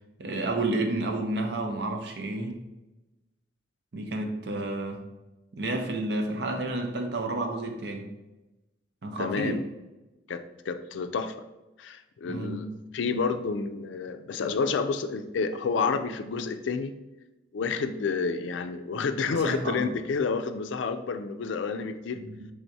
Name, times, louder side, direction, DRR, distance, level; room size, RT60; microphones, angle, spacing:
voice 1, 0.2-2.6 3.9-5.0 5.5-8.1 9.0-9.6 12.3-12.7 19.3-19.8 22.1-22.5, right 2 dB, 60° right, 4 dB, 0.6 m, -30 dB
voice 2, 9.2-9.6 10.3-11.3 11.8-12.7 12.9-16.9 17.5-22.2, left 5 dB, 80° left, 9 dB, 0.4 m, -29 dB
4.6 x 3.5 x 2.7 m, 1.0 s
head